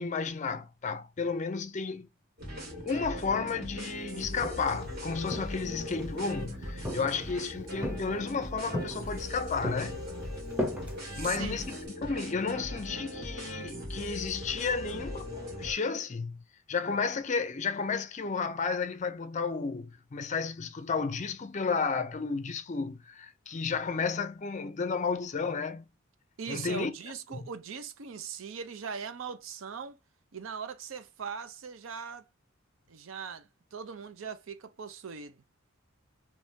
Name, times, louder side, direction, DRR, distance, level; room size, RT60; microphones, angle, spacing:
voice 1, 0.0-2.1 2.9-10.0 11.2-15.3 15.6-16.4 16.7-25.9 26.5-26.9 27.3-27.5, left 5 dB, 35° left, 0.4 m, -32 dB
sound 1, 2.4-15.7, left 1 dB, 50° right, 2.2 m, -40 dB
Walk footsteps, 4.2-4.8 5.3-6.3 6.8-7.4 7.8-8.4 8.7-9.3 9.6-11.9, left 1 dB, 5° right, 0.9 m, -37 dB
voice 2, 11.1-11.6 26.4-30.0 30.3-32.3 32.9-35.4, right 6 dB, 70° right, 0.5 m, -40 dB
3.6 x 3.0 x 2.6 m
head